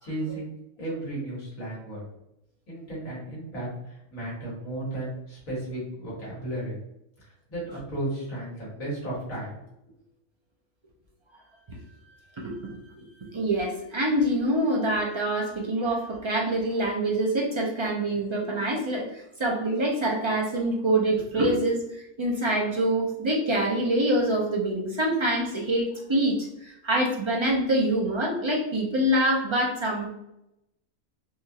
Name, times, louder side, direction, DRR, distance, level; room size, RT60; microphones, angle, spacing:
voice 1, 0.0-0.5 0.8-2.0 2.7-6.8 7.5-9.6, right 1 dB, 70° left, -6 dB, 2.0 m, -34 dB
voice 2, 12.4-12.8 13.3-30.1, right 1 dB, 45° right, -2 dB, 0.3 m, -25 dB
4.3 x 2.4 x 2.8 m, 0.83 s
omnidirectional pair, 1.5 m